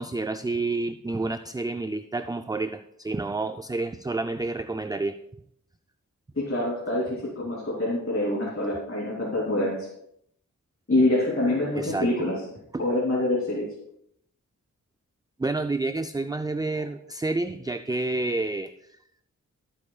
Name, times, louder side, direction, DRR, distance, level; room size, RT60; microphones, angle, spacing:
voice 1, 0.0-5.2 11.8-12.1 12.7-12.8 15.4-18.7, right 2 dB, 15° right, 10 dB, 0.4 m, -29 dB
voice 2, 6.3-9.9 10.9-12.4 12.8-13.7, left 1 dB, 45° left, -5 dB, 3.0 m, -25 dB
16.0 x 8.5 x 2.4 m, 0.74 s
cardioid pair, 55°, 31 cm